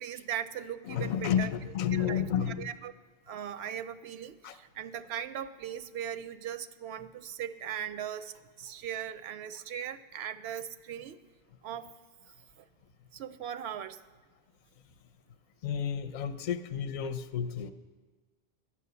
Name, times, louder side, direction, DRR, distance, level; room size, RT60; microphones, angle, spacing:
voice 1, 0.0-1.5 1.9-2.3 2.6-2.9 3.3-11.2 11.6-11.9 12.6-12.7 13.1-14.0, right 9 dB, 80° right, 12 dB, 0.8 m, -39 dB
voice 2, 0.8-2.8 4.4-4.6 15.6-17.7, left 8 dB, 50° left, 11 dB, 0.6 m, -31 dB
12.0 x 8.6 x 6.9 m, 1.3 s
omnidirectional pair, 1.1 m